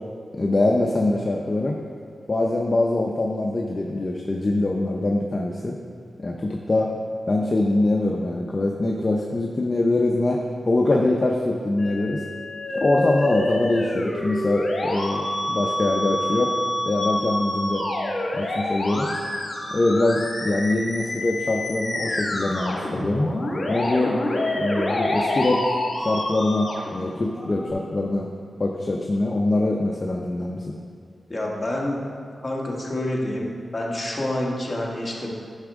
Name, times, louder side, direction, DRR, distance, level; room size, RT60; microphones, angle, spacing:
voice 1, 0.4-1.8 2.3-5.8 6.2-6.9 7.3-12.2 12.7-16.5 16.9-17.8 18.3-19.1 19.7-23.3 23.7-24.1 24.6-25.6 26.0-28.3 28.6-30.7, left 2 dB, 35° left, 0 dB, 0.6 m, -23 dB
Musical instrument, 11.8-27.7, left 1 dB, 55° left, 1.6 m, -27 dB
voice 2, 31.3-32.0 32.4-35.3, left 1 dB, 20° left, -3 dB, 1.4 m, -28 dB
9.8 x 5.9 x 3.6 m, 2.2 s
wide cardioid pair, 85°, 0 cm